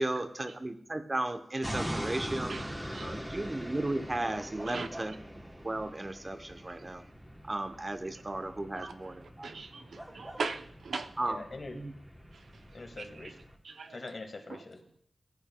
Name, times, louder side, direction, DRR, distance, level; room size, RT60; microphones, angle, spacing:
voice 1, 0.0-2.5 2.9-7.0 7.5-9.5 11.2-11.5 11.7-11.9, right 2 dB, 25° right, 8 dB, 0.7 m, -35 dB
sound 1, 1.6-13.5, equal, 5° right, 0.9 m, -42 dB
voice 2, 2.9-3.3 11.2-11.8 12.7-13.4 13.9-15.0, left 3 dB, 55° left, 4 dB, 1.4 m, -44 dB
voice 3, 9.4-11.1 13.7-14.0, right 4 dB, 90° right, 7 dB, 0.6 m, -38 dB
14.5 x 8.6 x 2.2 m, 0.66 s
wide cardioid pair, 100°, 0 cm